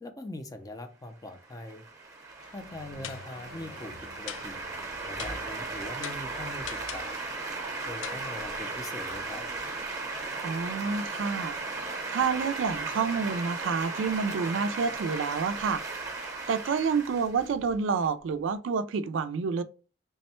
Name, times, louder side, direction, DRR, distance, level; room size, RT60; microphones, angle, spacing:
voice 1, 0.0-1.8 2.5-4.6 5.1-7.2 7.8-9.4, left 1 dB, 20° left, 0.5 m, -42 dB
sound 1, 1.4-18.1, right 3 dB, 20° right, 0.8 m, -36 dB
sound 2, 2.4-2.7 3.0-3.4 4.3-4.7 5.2-5.6 6.0-7.2 8.0-8.3, left 10 dB, 80° left, 0.3 m, -42 dB
sound 3, 2.6-6.7, left 3 dB, 60° left, 0.8 m, -52 dB
voice 2, 10.4-11.5 12.1-15.8 16.5-19.6, right 5 dB, 80° right, 0.3 m, -28 dB
3.4 x 2.1 x 4.2 m
head